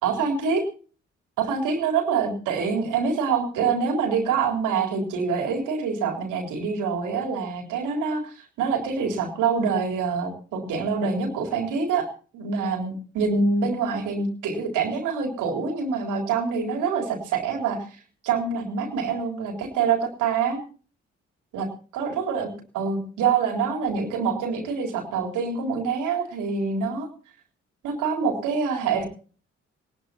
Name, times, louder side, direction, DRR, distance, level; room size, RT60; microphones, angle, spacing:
voice 1, 0.0-0.6 1.4-12.1 12.3-20.6 21.5-21.7 21.9-27.1 27.8-29.1, right 5 dB, 60° right, 3 dB, 3.8 m, -25 dB
20.0 x 19.5 x 2.9 m, 0.40 s
figure-of-eight pair, 40°, 34 cm